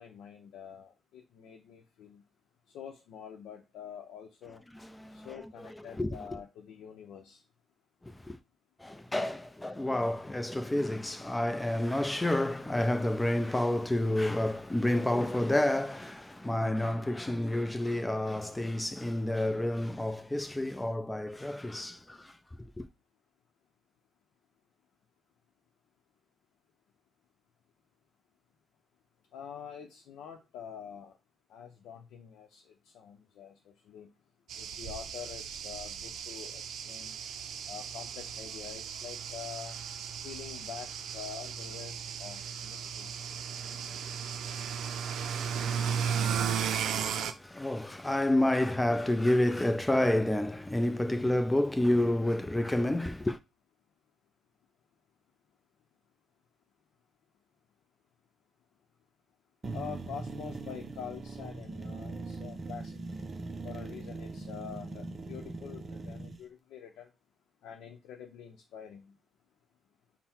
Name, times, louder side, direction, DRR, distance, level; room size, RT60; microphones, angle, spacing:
voice 1, 0.0-2.2 2.7-4.6 5.1-7.4 29.3-31.2 31.5-34.1 34.6-37.2 37.7-39.8 40.2-43.1 59.7-63.0 63.6-67.1 67.6-69.1, left 8 dB, 85° left, 0.7 m, -46 dB
voice 2, 4.8-5.3 6.0-6.1 8.0-8.4 8.8-22.3 22.8-22.9 45.4-46.7 47.4-53.4, left 1 dB, 10° left, 0.6 m, -29 dB
sound 1, 34.5-47.3, right 7 dB, 75° right, 0.5 m, -35 dB
sound 2, 59.6-66.4, right 3 dB, 35° right, 0.7 m, -41 dB
5.6 x 2.1 x 4.3 m
cardioid pair, 90°, 0 cm